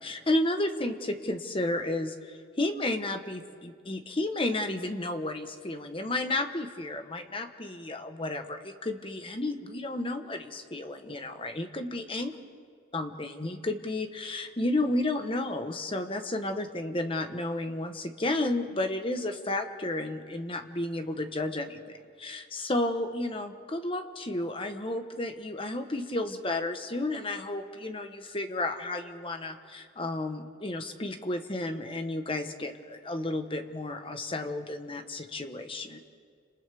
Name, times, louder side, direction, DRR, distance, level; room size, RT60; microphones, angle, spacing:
voice 1, 0.0-12.3 12.9-36.0, left 2 dB, 25° left, 7 dB, 1.1 m, -32 dB
30.0 x 27.0 x 3.5 m, 2.1 s
head